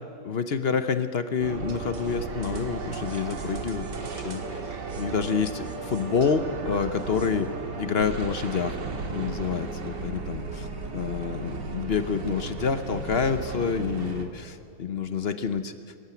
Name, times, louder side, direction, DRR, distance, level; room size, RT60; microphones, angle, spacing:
voice 1, 0.2-3.9 4.1-4.6 5.0-7.5 7.8-8.8 9.1-15.7, left 6 dB, 50° left, 10 dB, 0.8 m, -28 dB
sound 1, 1.4-14.2, right 4 dB, 80° right, 2.4 m, -35 dB
23.5 x 14.0 x 9.1 m, 2.6 s
omnidirectional pair, 1.8 m